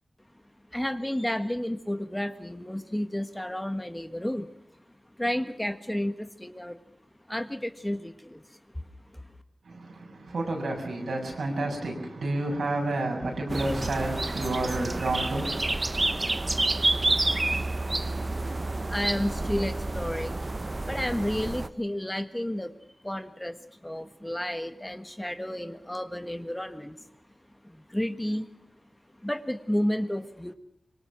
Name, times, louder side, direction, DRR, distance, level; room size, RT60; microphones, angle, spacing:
voice 1, 0.7-4.5 5.2-6.8 7.3-8.8 9.1-9.2 18.9-20.4 20.8-22.7 23.0-27.1 27.6-28.5 29.2-30.5, left 1 dB, 10° left, 1.4 m, -31 dB
voice 2, 9.6-16.0, right 2 dB, 90° right, 6.9 m, -30 dB
sound 1, 13.5-21.7, right 2 dB, 35° right, 0.9 m, -29 dB
25.5 x 23.5 x 6.3 m
wide cardioid pair, 75°, 0 cm